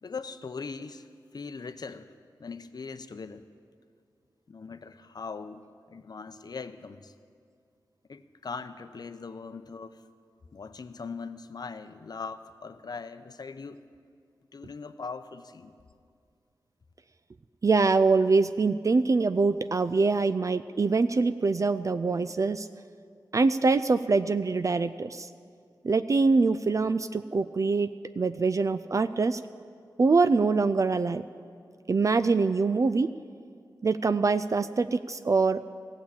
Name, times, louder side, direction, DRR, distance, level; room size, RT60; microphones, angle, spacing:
voice 1, 0.0-1.1 1.3-2.1 2.4-3.5 4.5-7.1 8.1-10.0 10.5-13.8 14.5-15.8, left 4 dB, 60° left, 11 dB, 0.6 m, -40 dB
voice 2, 17.6-22.7 23.3-25.3 25.8-27.9 28.2-29.4 30.0-31.2 31.9-33.1 33.8-35.6, right 4 dB, 45° right, 12 dB, 0.4 m, -24 dB
15.5 x 7.3 x 8.6 m, 2.2 s
cardioid pair, 65°, 8 cm